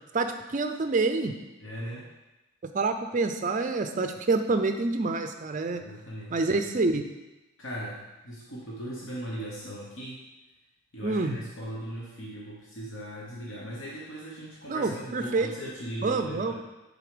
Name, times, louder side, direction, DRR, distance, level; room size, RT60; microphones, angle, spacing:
voice 1, 0.1-1.3 2.7-5.8 6.3-7.0 11.0-11.4 14.7-15.5 16.0-16.5, right 3 dB, 35° right, 7 dB, 0.4 m, -27 dB
voice 2, 1.6-2.1 5.7-6.4 7.6-10.2 10.9-16.5, equal, 65° left, -5 dB, 1.1 m, -38 dB
6.7 x 3.9 x 5.0 m, 1.0 s
head